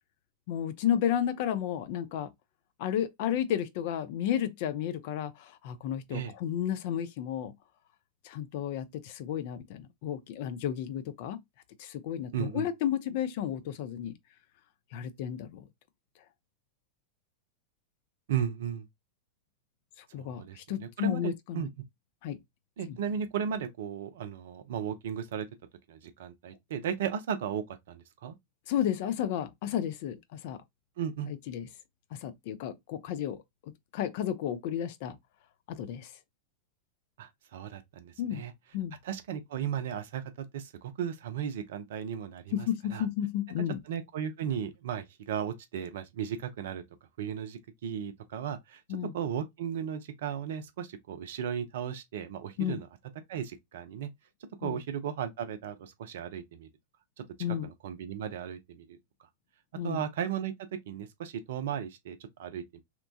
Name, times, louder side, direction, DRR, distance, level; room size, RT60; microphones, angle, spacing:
voice 1, 0.5-2.3 2.8-7.5 8.2-11.4 11.8-14.1 14.9-15.6 20.1-21.7 22.2-22.4 22.9-23.0 28.7-30.6 31.3-31.7 32.1-33.4 33.9-35.2 35.7-36.1 38.2-38.4 38.7-39.0 42.5-43.8 48.9-49.1 52.6-52.8 54.6-54.8 57.4-57.7 59.8-60.0, left 10 dB, 50° left, 0.4 m, -32 dB
voice 2, 12.3-12.7 18.3-18.9 20.2-21.7 22.8-25.5 25.9-28.4 31.0-31.3 37.2-38.5 39.0-43.1 43.9-46.8 47.2-48.8 49.1-52.9 53.3-54.1 54.6-56.7 57.2-57.3 57.6-59.0 59.8-62.8, right 8 dB, 55° right, 0.5 m, -35 dB
2.9 x 2.1 x 2.5 m
figure-of-eight pair, 90°, 0 cm